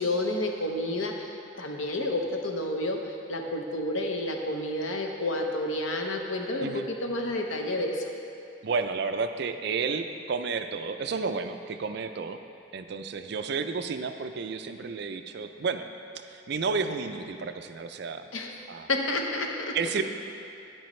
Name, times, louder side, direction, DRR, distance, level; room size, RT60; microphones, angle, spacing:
voice 1, 0.0-8.0 18.3-18.6 18.9-19.8, left 1 dB, 85° left, 2 dB, 0.9 m, -30 dB
voice 2, 8.6-12.4 12.7-15.9 16.1-18.3 18.7-18.9 19.7-20.0, right 5 dB, 55° right, 8 dB, 0.4 m, -31 dB
10.0 x 8.9 x 3.2 m, 2.6 s
head